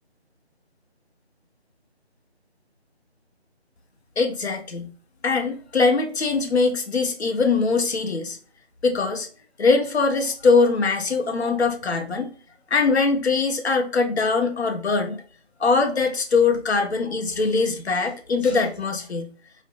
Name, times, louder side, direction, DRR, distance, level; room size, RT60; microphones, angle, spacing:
voice 1, 4.2-4.9 5.2-8.4 8.8-9.3 9.6-12.3 12.7-15.2 15.6-19.3, left 4 dB, 70° left, 4 dB, 0.7 m, -22 dB
2.5 x 2.0 x 2.5 m, 0.43 s
figure-of-eight pair, 160°, 33 cm